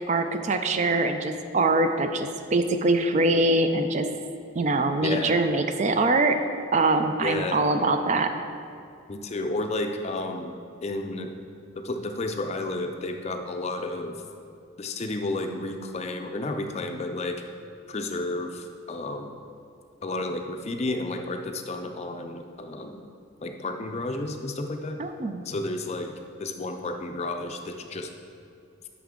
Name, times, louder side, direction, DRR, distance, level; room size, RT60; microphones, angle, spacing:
voice 1, 0.1-4.1 4.6-6.4 6.7-8.3 25.0-25.4, right 2 dB, 35° right, 7 dB, 0.4 m, -23 dB
voice 2, 5.0-5.4 7.2-7.6 9.1-10.5 10.8-11.3 11.8-14.2 14.8-17.4 17.9-19.4 20.0-23.0 23.4-25.0 25.5-28.1, left 2 dB, 30° left, 5 dB, 0.5 m, -31 dB
9.0 x 6.1 x 3.7 m, 2.5 s
head